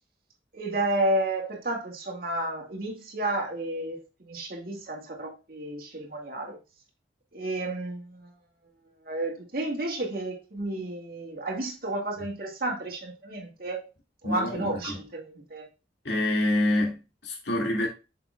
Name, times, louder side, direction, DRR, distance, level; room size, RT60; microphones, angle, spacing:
voice 1, 0.5-6.6 7.3-8.3 9.0-13.9 14.2-15.7, right 1 dB, 55° right, 2.2 m, -31 dB
voice 2, 14.2-15.0 16.0-17.9, left 1 dB, 75° left, 2.1 m, -27 dB
6.8 x 6.8 x 2.3 m
head